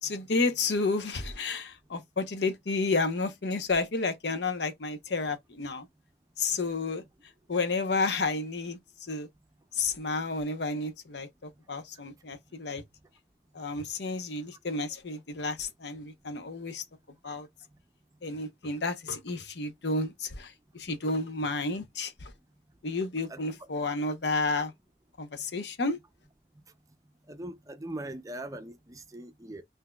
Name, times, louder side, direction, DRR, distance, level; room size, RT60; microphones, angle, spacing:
voice 1, 0.0-5.9 6.4-7.0 7.5-9.3 9.7-12.8 13.5-16.8 17.2-17.5 18.2-22.3 22.8-24.7 25.2-26.0, left 3 dB, 75° left, 0.8 m, -31 dB
voice 2, 27.3-29.6, right 1 dB, 20° right, 0.5 m, -40 dB
5.8 x 2.7 x 2.2 m
head